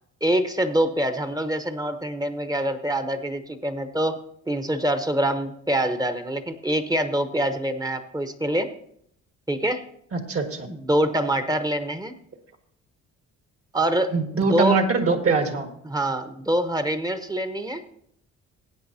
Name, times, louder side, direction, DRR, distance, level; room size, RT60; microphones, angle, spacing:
voice 1, 0.2-4.1 4.5-8.7 9.5-9.8 10.7-12.1 13.7-14.8 15.8-17.8, right 1 dB, 10° right, 9 dB, 1.0 m, -25 dB
voice 2, 10.1-10.7 14.1-15.7, right 4 dB, 50° right, 5 dB, 2.0 m, -22 dB
17.0 x 8.5 x 2.8 m, 0.68 s
cardioid pair, 90°, 30 cm